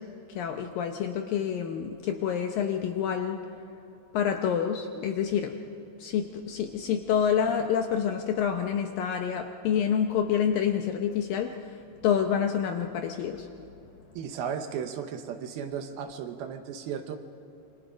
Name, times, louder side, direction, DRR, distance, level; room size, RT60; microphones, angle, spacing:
voice 1, 0.4-3.4 4.1-5.5 6.0-11.6 12.0-13.5, left 8 dB, 75° left, 5 dB, 2.2 m, -27 dB
voice 2, 14.1-17.2, right 7 dB, 75° right, 7 dB, 2.6 m, -35 dB
27.5 x 23.5 x 5.1 m, 2.9 s
omnidirectional pair, 4.9 m